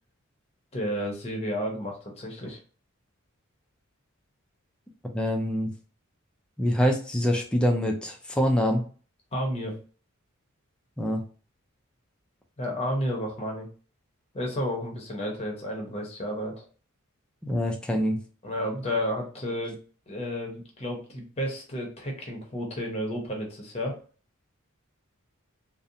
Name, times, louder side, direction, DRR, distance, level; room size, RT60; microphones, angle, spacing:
voice 1, 0.7-2.6 9.3-9.7 12.6-13.7 14.3-16.6 18.4-19.8 20.1-24.0, equal, 30° left, 0 dB, 0.7 m, -31 dB
voice 2, 5.1-5.7 6.6-8.8 11.0-11.2 17.4-18.2, equal, 5° left, 1 dB, 0.4 m, -25 dB
2.5 x 2.1 x 2.7 m, 0.39 s
head